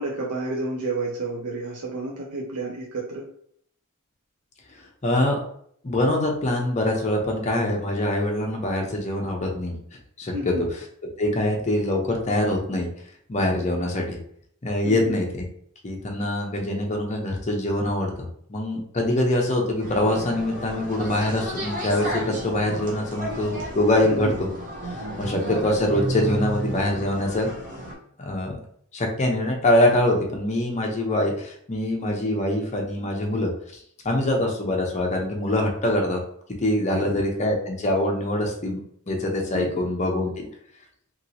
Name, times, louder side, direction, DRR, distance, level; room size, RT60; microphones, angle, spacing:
voice 1, 0.0-3.3 10.3-10.7 14.8-15.1 24.0-24.3 36.9-37.2 39.5-39.7, right 2 dB, 75° right, -1 dB, 0.5 m, -30 dB
voice 2, 5.0-5.4 5.8-9.8 10.2-10.6 11.2-12.9 13.3-14.2 14.6-15.4 15.8-18.1 18.5-24.3 25.2-27.5 28.2-28.6 28.9-36.2 36.6-38.8 39.1-40.5, left 1 dB, 30° left, 1 dB, 0.6 m, -24 dB
sound 1, 19.8-27.9, equal, 40° right, 0.9 m, -33 dB
2.9 x 2.9 x 2.7 m, 0.65 s
head